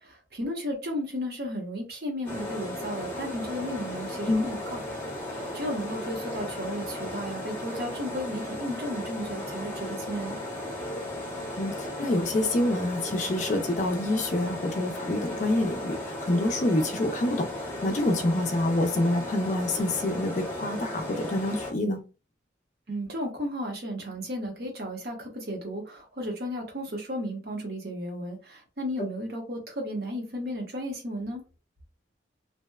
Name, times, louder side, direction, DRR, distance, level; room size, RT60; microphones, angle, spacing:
voice 1, 0.0-10.4 22.9-31.4, equal, 55° right, 0.8 m, -34 dB
sound 1, 2.2-21.7, left 1 dB, 10° left, 0.7 m, -35 dB
voice 2, 11.6-17.5 17.8-22.0, left 1 dB, 40° left, 0.4 m, -27 dB
2.7 x 2.1 x 2.2 m
head